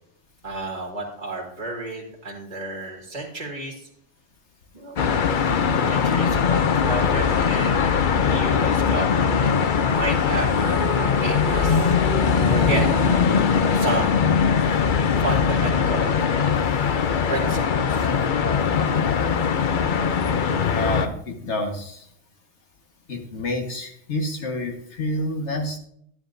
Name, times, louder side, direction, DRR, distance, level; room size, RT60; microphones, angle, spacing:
voice 1, 0.4-3.9 4.7-5.1 5.8-12.0 12.5-12.9 13.7-14.3 15.2-16.4 17.3-18.1, right 2 dB, 40° right, -2 dB, 2.1 m, -31 dB
sound 1, 5.0-21.1, left 6 dB, 50° left, 0.7 m, -21 dB
sound 2, 10.4-14.8, right 3 dB, 80° right, 1.2 m, -33 dB
voice 2, 20.6-22.1 23.1-25.8, left 1 dB, 80° left, 2 dB, 1.8 m, -28 dB
11.5 x 10.0 x 2.6 m, 0.69 s
omnidirectional pair, 1.2 m